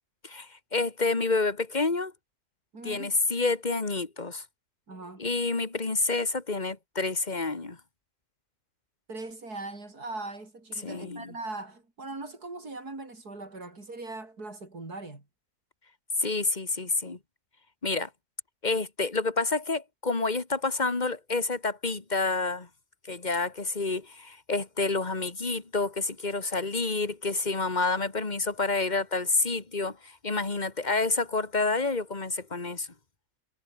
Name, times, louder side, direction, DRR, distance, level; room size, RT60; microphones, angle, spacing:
voice 1, 0.2-2.1 2.8-4.4 5.2-7.8 10.8-11.3 16.2-17.2 17.8-18.1 18.6-22.7 23.1-32.9, left 3 dB, 30° left, 2.4 m, -28 dB
voice 2, 2.7-3.2 4.9-5.3 9.1-15.3, right 2 dB, 85° right, 5.8 m, -40 dB
omnidirectional pair, 1.6 m